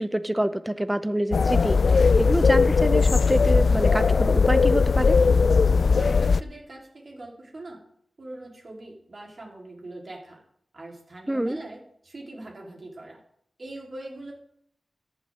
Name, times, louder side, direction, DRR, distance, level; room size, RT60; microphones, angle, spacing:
voice 1, 0.0-5.2 11.3-11.6, right 1 dB, 10° right, 14 dB, 0.7 m, -27 dB
sound 1, 1.3-6.4, left 4 dB, 75° left, 0.3 m, -19 dB
voice 2, 5.9-7.8 8.2-10.4 10.7-13.2 13.6-14.3, right 2 dB, 55° right, -1 dB, 3.9 m, -41 dB
14.5 x 11.0 x 3.7 m, 0.67 s
wide cardioid pair, 90°, 0 cm